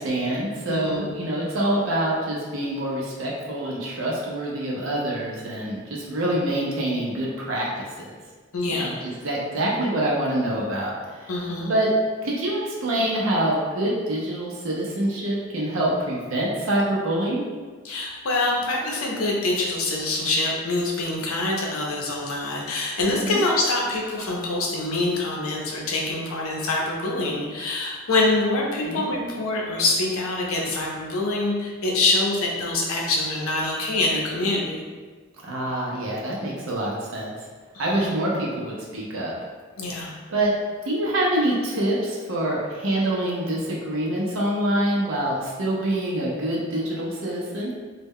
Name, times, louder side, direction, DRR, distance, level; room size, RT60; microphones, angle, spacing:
voice 1, 0.0-7.7 8.0-8.1 8.7-11.3 11.7-11.9 12.2-17.4 23.2-23.5 28.8-29.1 35.4-37.3 37.8-39.3 39.9-40.5 40.8-47.7, right 1 dB, 70° right, -4 dB, 0.5 m, -26 dB
voice 2, 0.7-1.1 8.5-9.0 11.3-11.7 17.8-34.8 37.7-38.1 39.8-40.1, left 2 dB, 85° left, -2 dB, 0.6 m, -25 dB
2.1 x 2.1 x 3.5 m, 1.5 s
head